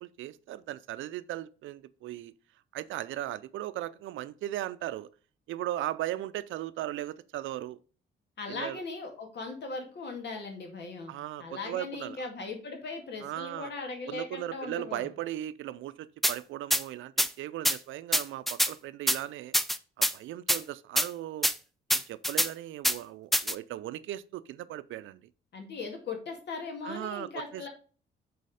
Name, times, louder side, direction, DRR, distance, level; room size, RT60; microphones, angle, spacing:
voice 1, 0.0-2.3 2.7-5.1 5.5-7.8 8.5-8.8 11.1-12.3 13.2-13.7 14.1-19.5 20.0-21.5 21.9-25.3 26.8-27.7, right 14 dB, 80° right, 0.5 m, -37 dB
voice 2, 8.4-11.1 11.4-15.1 25.5-27.7, left 4 dB, 60° left, 2.1 m, -39 dB
sound 1, 16.2-16.3 16.7-16.8 17.2-17.3 17.6-17.8 18.1-18.7 19.1-19.2 19.5-20.1 20.5-20.6 21.0-21.1 21.4-21.5 21.9-22.5 22.8-23.0 23.3-23.5, equal, ahead, 0.4 m, -25 dB
6.7 x 4.2 x 4.9 m
cardioid pair, 90°, 20 cm